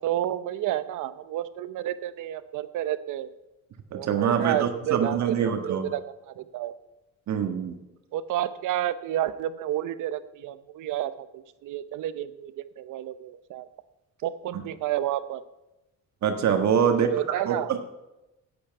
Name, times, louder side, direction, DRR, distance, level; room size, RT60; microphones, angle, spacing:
voice 1, 0.0-3.3 3.9-6.7 8.1-13.7 14.2-15.4 16.8-17.7, right 12 dB, 85° right, 13 dB, 0.8 m, -30 dB
voice 2, 3.9-5.9 7.3-7.8 16.2-17.1 17.5-17.8, right 7 dB, 65° right, 5 dB, 1.5 m, -24 dB
8.7 x 8.5 x 9.3 m, 0.97 s
cardioid pair, 90°, 30 cm